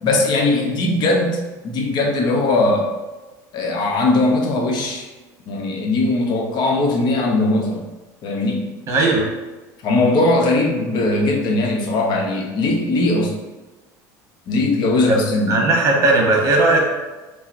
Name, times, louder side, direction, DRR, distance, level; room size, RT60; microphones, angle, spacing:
voice 1, 0.0-1.4 1.6-2.9 3.5-5.1 5.5-7.8 8.2-8.7 9.8-13.3 14.5-15.6, left 2 dB, 50° left, 1 dB, 0.7 m, -19 dB
voice 2, 8.9-9.2 15.1-15.2 15.5-16.8, right 2 dB, 35° right, -1 dB, 1.1 m, -16 dB
5.4 x 2.0 x 2.6 m, 1.2 s
supercardioid pair, 100°, 9 cm